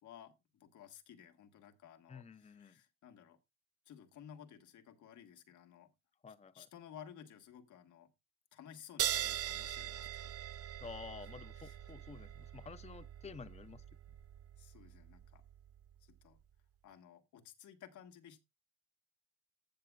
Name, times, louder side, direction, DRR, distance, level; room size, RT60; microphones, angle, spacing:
voice 1, 0.0-3.4 3.8-5.9 6.5-8.1 8.5-10.7 11.2-11.3 11.6-11.8 14.6-15.4 16.0-16.4 16.8-18.4, left 9 dB, 75° left, 1.6 m, -56 dB
voice 2, 2.1-2.8 6.2-6.7 10.8-13.8, left 5 dB, 20° left, 0.6 m, -51 dB
sound 1, 9.0-16.0, right 11 dB, 50° right, 0.6 m, -42 dB
15.5 x 6.8 x 2.4 m
cardioid pair, 90°, 30 cm